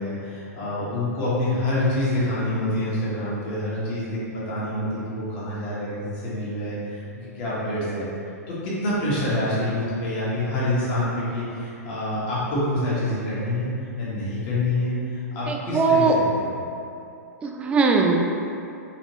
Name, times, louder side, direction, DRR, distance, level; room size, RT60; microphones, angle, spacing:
voice 1, 0.0-7.0 7.3-8.1 8.5-13.7 14.0-16.1 16.4-16.6, left 1 dB, 40° left, -9 dB, 1.5 m, -26 dB
voice 2, 15.5-16.2 17.4-18.2, right 4 dB, 15° right, 2 dB, 0.3 m, -20 dB
4.1 x 2.8 x 3.0 m, 2.7 s
figure-of-eight pair, 110°, 9 cm